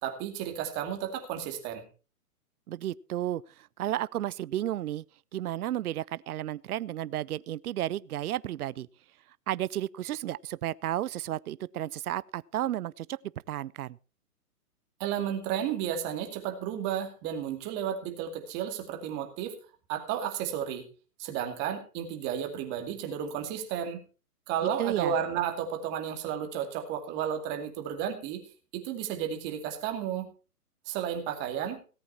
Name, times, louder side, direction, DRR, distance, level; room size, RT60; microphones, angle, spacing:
voice 1, 0.0-1.8 15.0-19.6 19.9-20.9 21.2-24.0 24.5-28.4 28.7-30.3 30.9-31.8, right 9 dB, 25° right, 2.4 m, -33 dB
voice 2, 2.7-3.4 3.8-5.0 5.3-8.9 9.5-13.1 13.5-14.0 24.8-25.1, right 13 dB, 70° right, 0.6 m, -32 dB
17.5 x 8.5 x 4.4 m
hypercardioid pair, 155°, 46 cm